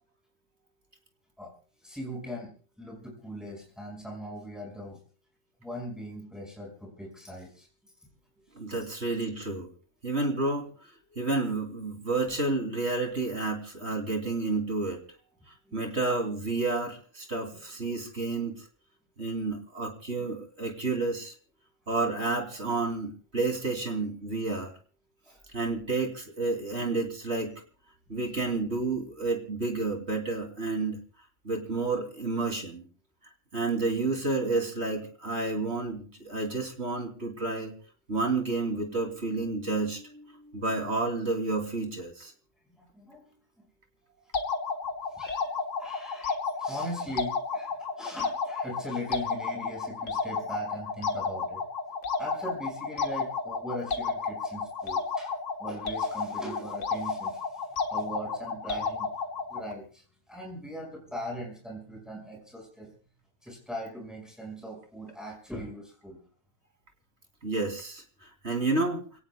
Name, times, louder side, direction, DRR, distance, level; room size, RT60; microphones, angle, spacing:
voice 1, 1.8-5.0 5.6-7.7 8.7-8.8 15.7-15.8 25.2-25.4 42.8-43.2 45.1-45.5 45.8-51.6 52.2-55.3 55.6-59.1 59.5-62.9 63.4-66.2, equal, ahead, -1 dB, 5.6 m, -40 dB
voice 2, 8.5-9.7 10.0-10.7 11.1-15.0 15.7-18.5 19.2-21.3 21.9-24.7 25.5-27.5 28.1-31.0 31.4-32.8 33.5-37.7 38.1-40.2 40.5-42.3 45.5-45.6 67.4-68.0 68.4-69.1, right 3 dB, 55° right, 3 dB, 3.3 m, -30 dB
sound 1, 44.3-59.7, left 4 dB, 70° left, 1.8 m, -32 dB
29.0 x 18.0 x 2.3 m, 0.40 s
omnidirectional pair, 1.3 m